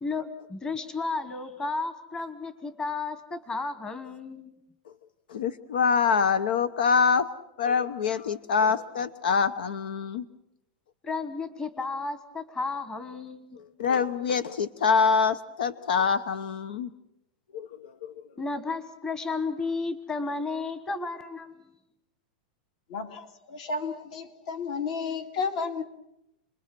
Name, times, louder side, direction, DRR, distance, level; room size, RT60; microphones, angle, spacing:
voice 1, 0.0-4.5 11.0-13.6 18.4-21.7, left 3 dB, 15° left, 1.3 m, -33 dB
voice 2, 5.3-7.3 7.6-10.2 13.6-16.9 17.5-18.1, left 5 dB, 85° left, 1.0 m, -25 dB
voice 3, 22.9-25.8, left 4 dB, 60° left, 2.6 m, -32 dB
29.5 x 21.0 x 6.1 m
supercardioid pair, 160°, 5 cm